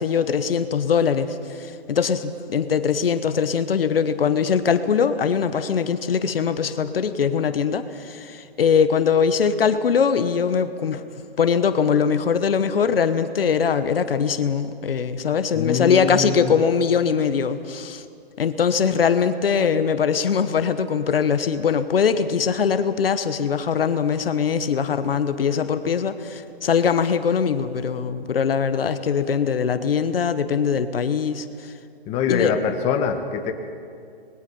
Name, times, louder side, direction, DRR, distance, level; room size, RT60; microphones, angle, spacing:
voice 1, 0.0-11.0 11.4-18.0 18.4-31.7 32.3-32.5, left 6 dB, 65° left, 11 dB, 1.2 m, -22 dB
voice 2, 15.5-16.5 32.1-33.5, left 6 dB, 20° left, 5 dB, 1.4 m, -24 dB
26.0 x 20.5 x 5.5 m, 2.4 s
hypercardioid pair, 140°, 30 cm